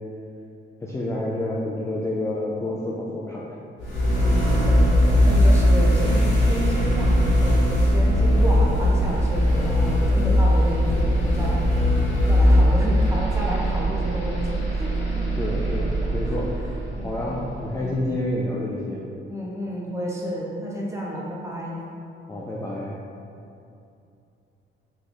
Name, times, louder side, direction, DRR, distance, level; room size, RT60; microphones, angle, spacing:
voice 1, 0.8-3.5 15.3-16.5 17.0-19.0 22.3-23.0, left 1 dB, 15° left, -5 dB, 0.4 m, -28 dB
sound 1, 3.8-17.7, equal, 65° left, 1.1 m, -20 dB
voice 2, 4.1-15.3 16.0-16.4 16.9-17.2 17.7-18.0 19.3-21.8, equal, 15° right, -5 dB, 0.7 m, -31 dB
3.0 x 2.4 x 3.8 m, 2.6 s
cardioid pair, 90°, 20 cm